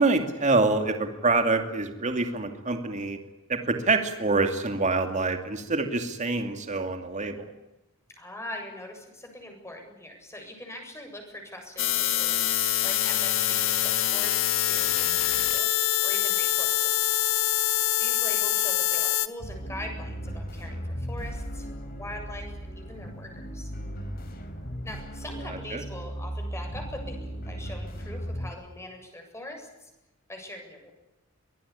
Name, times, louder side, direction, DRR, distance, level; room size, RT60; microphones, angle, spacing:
voice 1, 0.0-3.2 3.5-7.5 25.7-25.8, right 3 dB, 35° right, 6 dB, 2.6 m, -26 dB
voice 2, 8.1-15.7 16.0-17.4 18.0-21.7 22.0-23.7 24.8-29.9 30.3-31.0, left 1 dB, 15° left, 3 dB, 7.8 m, -42 dB
sound 1, 11.8-19.3, left 12 dB, 65° left, 1.5 m, -25 dB
sound 2, 19.4-28.5, equal, 45° left, 5.1 m, -36 dB
24.5 x 20.0 x 10.0 m, 0.95 s
head